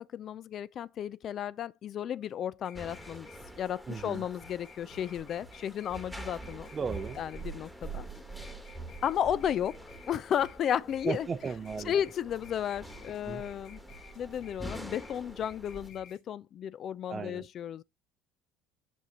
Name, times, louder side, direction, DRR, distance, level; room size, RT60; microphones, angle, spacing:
voice 1, 0.0-3.3 3.6-6.7 7.2-8.1 9.0-11.3 11.8-13.8 14.2-17.8, left 9 dB, 50° left, 0.4 m, -33 dB
sound 1, 2.6-16.2, left 4 dB, 65° left, 2.0 m, -55 dB
sound 2, 2.7-15.9, right 2 dB, 5° left, 1.5 m, -46 dB
voice 2, 3.9-4.2 6.7-7.2 11.1-11.9 13.3-13.4 17.1-17.4, right 5 dB, 30° right, 0.6 m, -35 dB
7.7 x 5.0 x 4.1 m
supercardioid pair, 100°, 0 cm